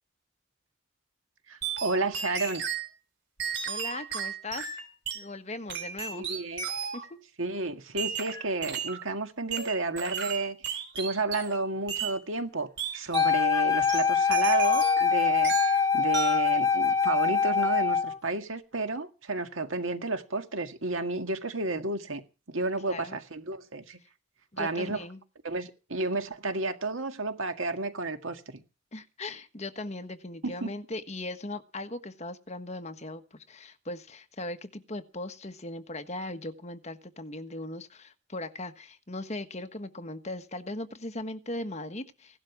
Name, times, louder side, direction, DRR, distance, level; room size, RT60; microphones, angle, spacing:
voice 1, 1.5-2.6 6.1-6.7 7.4-10.6 10.9-24.0 24.6-25.0 25.4-28.6 30.4-30.7, right 3 dB, 85° right, 1.9 m, -32 dB
sound 1, 1.6-2.9 3.4-5.3 5.7-7.1 8.0-9.0 9.5-11.6 11.9-12.2 12.8-13.4 13.8-15.1 15.4-15.8 16.1-16.5, right 6 dB, 60° right, 3.8 m, -34 dB
voice 2, 3.7-4.8 5.1-6.3 6.9-7.2 22.9-23.2 24.5-25.2 28.9-42.4, left 2 dB, 35° left, 1.3 m, -39 dB
Wind instrument woodwind instrument, 13.1-18.2, left 6 dB, 15° left, 0.9 m, -24 dB
17.0 x 12.0 x 6.0 m
head